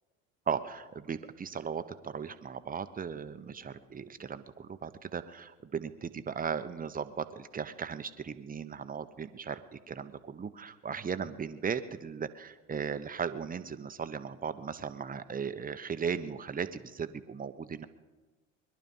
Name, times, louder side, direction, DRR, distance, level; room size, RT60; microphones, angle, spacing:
voice 1, 0.5-17.9, right 6 dB, 20° right, 11 dB, 1.0 m, -37 dB
21.5 x 11.5 x 5.5 m, 1.2 s
hypercardioid pair, 75°, 38 cm